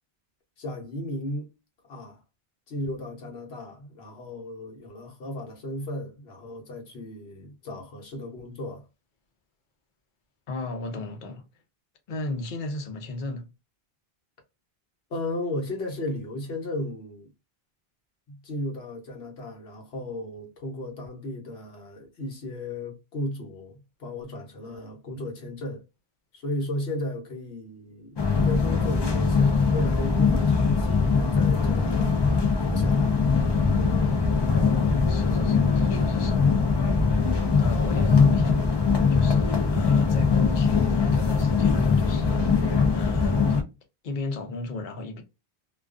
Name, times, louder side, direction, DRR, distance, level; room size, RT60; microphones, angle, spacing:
voice 1, 0.6-1.5 1.8-2.2 2.7-8.8 15.1-17.3 18.3-25.8 26.3-32.2 32.6-33.2, left 1 dB, 85° left, 1.1 m, -35 dB
voice 2, 10.5-11.5 12.1-13.5 34.5-36.8 37.6-38.6 38.8-43.4 44.0-45.2, left 2 dB, 55° left, 0.8 m, -35 dB
sound 1, 28.2-43.6, left 5 dB, 40° left, 0.3 m, -22 dB
2.4 x 2.3 x 2.3 m
omnidirectional pair, 1.0 m